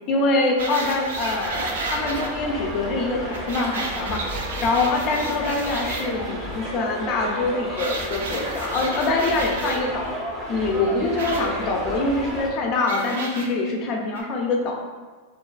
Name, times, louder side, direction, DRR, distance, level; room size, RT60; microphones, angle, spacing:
voice 1, 0.1-10.1 10.5-14.8, left 3 dB, 40° left, 1 dB, 0.4 m, -24 dB
sound 1, 0.6-12.5, equal, 15° right, 0.6 m, -33 dB
sound 2, 0.6-2.3 3.3-6.0 7.8-9.8 11.2-11.4 12.9-13.5 14.1-14.2, right 3 dB, 85° right, 0.4 m, -32 dB
2.3 x 2.3 x 2.2 m, 1.4 s
hypercardioid pair, 125°, 0 cm